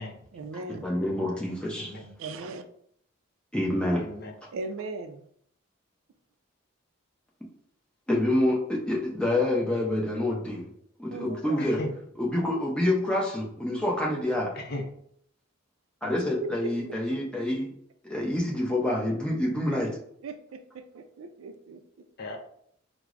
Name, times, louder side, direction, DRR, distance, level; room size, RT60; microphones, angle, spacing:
voice 1, 0.3-0.9 2.2-2.6 4.5-5.2 11.1-11.6 16.6-16.7 17.1-17.2 19.7-19.8 20.2-22.0, right 3 dB, 75° right, 8 dB, 0.3 m, -38 dB
voice 2, 0.8-2.0 3.5-4.1 8.1-10.7 11.0-11.8 12.2-14.5 16.0-17.7 18.0-19.9, left 1 dB, 5° left, -3 dB, 0.6 m, -27 dB
voice 3, 1.7-2.1 4.0-4.3 11.6-11.9 14.6-14.9 22.2-22.4, left 2 dB, 50° left, 3 dB, 0.5 m, -36 dB
4.5 x 2.0 x 2.4 m, 0.67 s
head